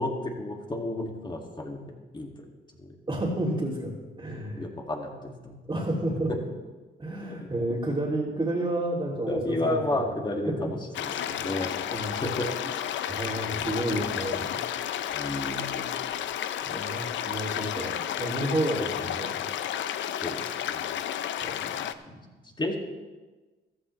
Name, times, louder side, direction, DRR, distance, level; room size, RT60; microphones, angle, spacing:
voice 1, 0.0-2.4 2.8-2.9 4.6-5.6 9.3-11.7 12.2-12.7 13.4-14.0 15.1-15.9 18.9-19.1 20.2-21.0 22.1-22.8, left 1 dB, 25° left, 1 dB, 2.3 m, -32 dB
voice 2, 3.1-4.7 5.7-6.3 7.0-10.0 10.4-10.7 11.9-12.2 13.1-14.6 16.6-19.4 21.4-21.7, right 1 dB, 25° right, -6 dB, 2.8 m, -31 dB
sound 1, 10.9-21.9, left 10 dB, 70° left, 0.6 m, -32 dB
14.5 x 13.5 x 3.3 m, 1.3 s
cardioid pair, 90°, 20 cm